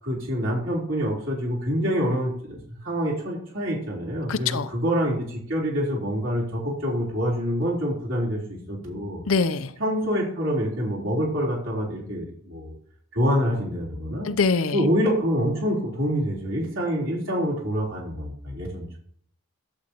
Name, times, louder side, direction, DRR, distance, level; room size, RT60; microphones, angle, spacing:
voice 1, 0.0-8.4 8.7-9.2 9.8-12.7 13.1-14.3 14.7-19.0, equal, 65° right, -4 dB, 3.7 m, -26 dB
voice 2, 4.3-4.7 9.3-9.7 14.2-14.8, left 4 dB, 75° left, 12 dB, 0.6 m, -23 dB
11.5 x 8.2 x 3.0 m, 0.63 s
head